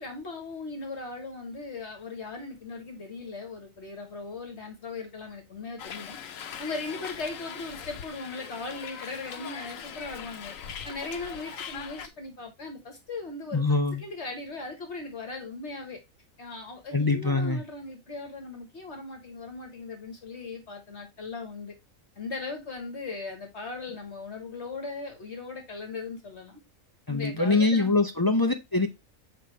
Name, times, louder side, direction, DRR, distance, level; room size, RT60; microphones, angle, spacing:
voice 1, 0.0-6.2 6.6-10.5 10.8-13.6 13.9-16.0 16.4-21.7 22.1-26.6 27.1-27.9, left 3 dB, 55° left, 1.6 m, -38 dB
Hiss, 5.8-12.1, left 7 dB, 75° left, 1.1 m, -41 dB
voice 2, 13.5-14.0 16.9-17.6 27.1-28.9, left 3 dB, 30° left, 0.4 m, -24 dB
6.8 x 4.5 x 3.2 m
omnidirectional pair, 1.4 m